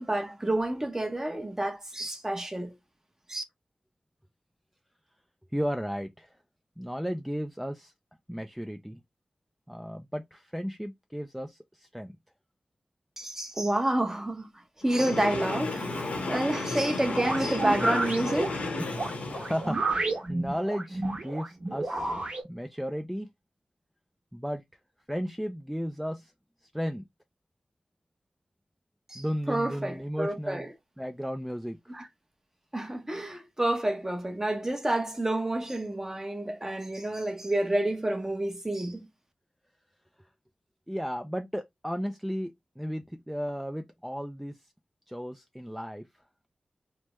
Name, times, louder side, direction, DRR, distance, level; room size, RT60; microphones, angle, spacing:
voice 1, 0.0-2.7 3.3-3.4 13.2-14.5 14.8-18.6 29.1-30.7 31.9-32.0 32.7-39.1, right 1 dB, 20° right, 0.8 m, -29 dB
voice 2, 5.5-6.4 6.8-7.9 8.3-9.0 9.7-12.1 19.0-22.1 22.4-23.3 24.3-24.6 25.1-26.3 26.6-27.0 29.1-30.7 31.0-32.0 40.2-40.3 40.9-44.7 45.1-46.1, equal, 5° right, 0.4 m, -34 dB
Train, 14.8-19.8, left 3 dB, 90° left, 1.0 m, -33 dB
sound 1, 17.1-22.4, right 2 dB, 60° right, 1.1 m, -31 dB
3.3 x 2.1 x 2.9 m
cardioid pair, 55°, 2 cm